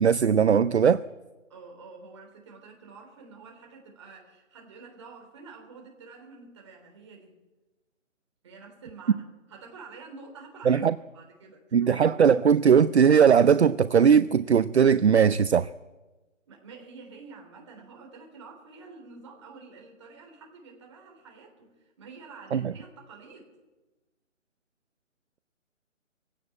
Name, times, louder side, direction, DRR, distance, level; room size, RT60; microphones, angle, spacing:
voice 1, 0.0-1.0 10.7-10.9 11.7-15.7 22.5-22.7, right 7 dB, 55° right, 14 dB, 0.6 m, -19 dB
voice 2, 1.5-7.4 8.4-10.8 11.1-12.0 16.5-23.5, right 4 dB, 20° right, 1 dB, 3.5 m, -48 dB
21.0 x 16.5 x 8.6 m, 1.1 s
hypercardioid pair, 175°, 39 cm